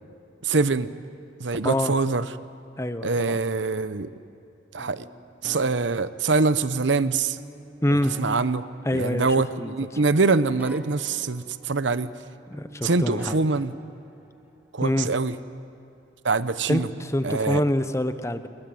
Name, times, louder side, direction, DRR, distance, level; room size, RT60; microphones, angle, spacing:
voice 1, 0.4-0.9 1.4-2.3 3.0-4.1 4.7-5.0 5.4-7.4 7.9-8.7 8.9-12.1 12.8-13.7 14.7-15.4 16.2-16.9 17.2-17.6, right 3 dB, 80° right, 13 dB, 0.9 m, -24 dB
voice 2, 2.8-3.4 7.8-8.1 8.9-9.3 9.6-9.7 12.5-13.4 14.8-15.1 16.7-18.5, left 1 dB, 15° left, 10 dB, 0.9 m, -25 dB
sound 1, 4.8-6.8 7.4-9.7 9.9-12.3 12.5-14.6, right 1 dB, 10° right, 1.5 m, -47 dB
28.0 x 22.0 x 7.8 m, 2.7 s
head